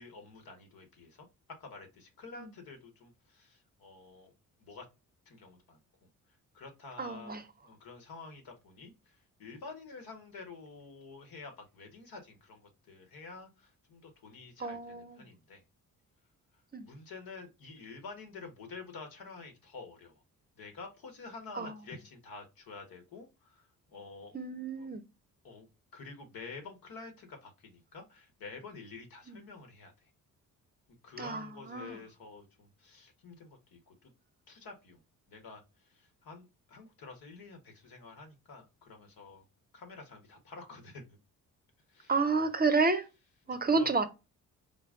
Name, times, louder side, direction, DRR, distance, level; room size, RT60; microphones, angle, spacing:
voice 1, 0.0-4.3 4.6-4.9 5.2-5.8 6.5-15.6 16.8-20.2 20.6-24.4 24.8-24.9 25.4-25.7 25.9-30.1 31.0-34.1 34.5-35.0 35.3-39.4 39.7-41.2 41.9-42.5 43.4-43.9, left 4 dB, 70° left, 1.4 m, -49 dB
voice 2, 7.0-7.4 14.6-15.2 16.7-16.9 21.6-21.7 24.3-25.0 29.3-29.4 31.2-32.0 42.1-43.0 43.5-44.1, right 4 dB, 25° right, 0.6 m, -30 dB
3.9 x 2.2 x 3.7 m
supercardioid pair, 60°, 37 cm